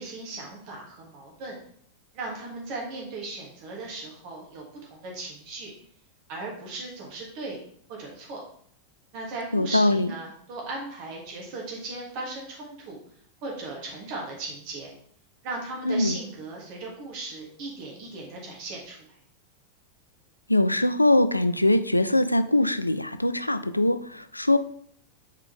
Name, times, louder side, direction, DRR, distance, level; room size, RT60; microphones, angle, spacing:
voice 1, 0.0-1.6 2.1-4.6 4.9-5.7 6.3-7.6 7.9-8.4 9.1-13.0 13.4-14.9 15.4-19.2, right 3 dB, 45° right, -2 dB, 2.6 m, -37 dB
voice 2, 9.5-10.1 15.9-16.2 20.5-24.6, left 1 dB, 85° left, 13 dB, 0.3 m, -22 dB
7.3 x 4.9 x 3.6 m, 0.62 s
figure-of-eight pair, 90°, 0 cm